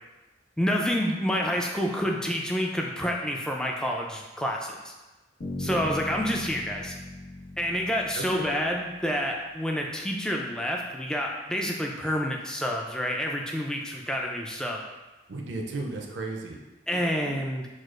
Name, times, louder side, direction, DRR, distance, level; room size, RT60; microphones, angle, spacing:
voice 1, 0.6-4.9 5.6-6.9 7.6-14.8 16.9-17.7, equal, 5° left, 0 dB, 0.3 m, -28 dB
Bass guitar, 5.4-9.3, left 1 dB, 75° left, 1.2 m, -39 dB
voice 2, 8.1-8.5 15.3-16.6 16.9-17.3, right 2 dB, 85° right, 1 dB, 0.6 m, -35 dB
6.2 x 2.4 x 2.4 m, 1.1 s
head